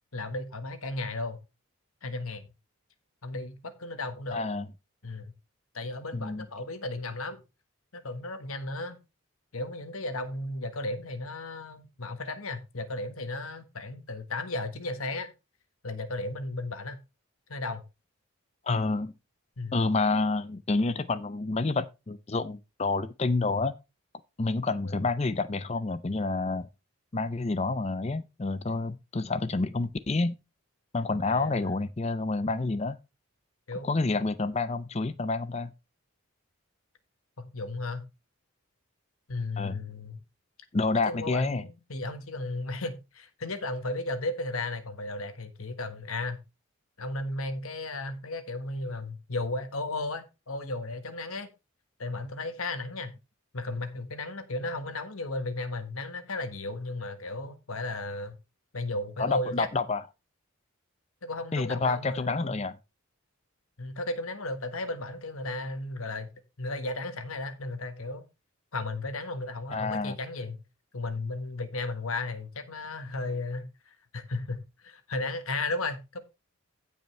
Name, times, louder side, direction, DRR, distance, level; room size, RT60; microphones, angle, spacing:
voice 1, 0.1-1.4 2.0-2.5 3.2-4.4 5.0-5.3 5.7-7.4 7.9-9.0 9.5-15.3 15.8-17.0 17.5-17.8 19.6-19.7 24.8-25.0 31.2-31.7 33.7-33.9 37.4-38.1 39.3-40.2 41.1-46.4 47.0-51.5 52.0-53.1 53.5-58.4 58.7-59.7 61.2-62.6 63.8-66.3 66.6-68.2 68.7-70.6 70.9-76.2, left 2 dB, 80° left, 1.5 m, -35 dB
voice 2, 4.3-4.7 6.1-6.5 18.7-19.1 19.7-23.7 24.4-26.7 27.1-30.3 30.9-33.0 33.8-35.7 39.6-39.8 40.7-41.6 59.2-60.0 61.5-62.8 69.7-70.2, left 3 dB, 30° left, 0.5 m, -28 dB
16.0 x 5.4 x 3.2 m
head